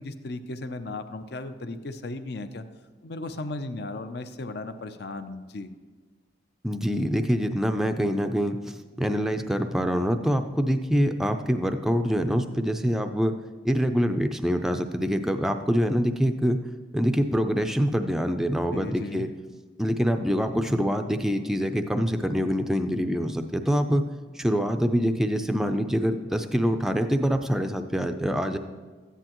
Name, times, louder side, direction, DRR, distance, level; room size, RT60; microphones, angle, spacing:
voice 1, 0.0-2.7 3.0-5.7 18.7-19.3, left 2 dB, 55° left, 10 dB, 0.6 m, -36 dB
voice 2, 6.6-13.3 13.6-16.6 16.9-19.3 19.8-24.0 24.3-28.6, equal, ahead, 6 dB, 0.4 m, -25 dB
13.5 x 9.9 x 3.0 m, 1.4 s
head